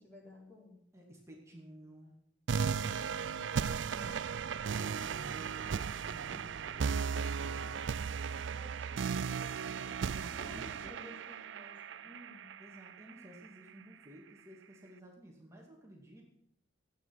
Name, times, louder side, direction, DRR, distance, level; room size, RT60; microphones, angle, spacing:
voice 1, 0.0-0.8 2.7-3.5 8.5-12.6, left 1 dB, 10° left, -4 dB, 4.0 m, -55 dB
voice 2, 0.9-2.2 3.9-4.3 4.7-8.6 10.0-11.2 12.6-16.2, equal, 15° right, -1 dB, 2.4 m, -54 dB
sound 1, 2.5-13.5, right 6 dB, 70° right, 0.4 m, -36 dB
15.5 x 9.3 x 6.1 m, 0.73 s
head